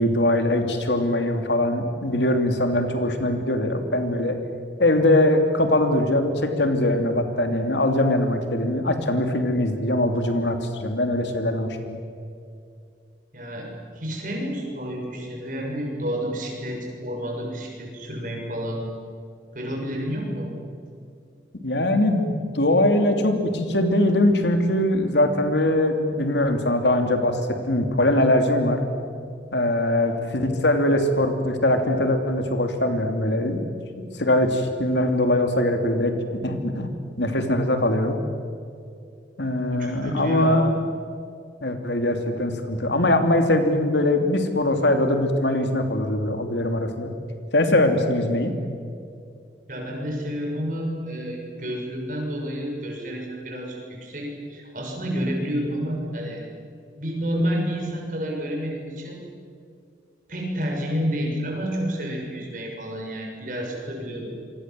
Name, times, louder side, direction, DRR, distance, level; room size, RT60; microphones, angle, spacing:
voice 1, 0.0-4.4 4.8-12.0 21.5-22.3 22.5-27.4 27.7-28.8 29.5-33.6 34.0-36.1 36.4-36.9 37.2-38.2 39.4-40.7 41.6-47.1 47.5-48.5, left 1 dB, 75° left, 5 dB, 3.0 m, -22 dB
voice 2, 13.3-18.8 19.5-20.5 29.9-30.3 39.7-40.6 49.7-56.4 57.0-59.2 60.3-64.3, equal, 45° right, 0 dB, 6.9 m, -30 dB
27.5 x 24.0 x 7.7 m, 2.4 s
head